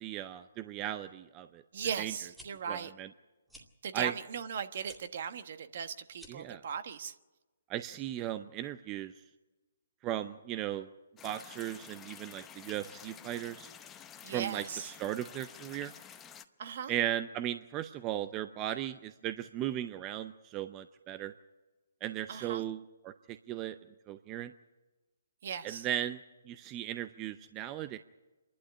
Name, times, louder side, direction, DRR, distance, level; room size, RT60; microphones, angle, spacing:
voice 1, 0.0-1.6 2.0-2.1 2.7-3.1 3.9-4.1 6.3-6.6 7.7-9.1 10.0-10.9 11.2-13.7 14.3-15.9 16.9-21.3 22.0-23.8 24.1-24.5 25.6-28.0, right 12 dB, 25° right, 11 dB, 0.6 m, -37 dB
voice 2, 1.7-2.9 3.8-7.1 14.2-14.9 16.6-16.9 22.3-22.6 25.4-25.9, right 7 dB, 55° right, 10 dB, 1.3 m, -38 dB
sound 1, 2.3-2.5 3.5-3.7 4.8-5.0 6.1-6.5, equal, ahead, 2.4 m, -52 dB
sound 2, 11.2-16.4, left 8 dB, 15° left, 0.8 m, -51 dB
26.5 x 12.0 x 9.9 m, 1.2 s
hypercardioid pair, 145°, 0 cm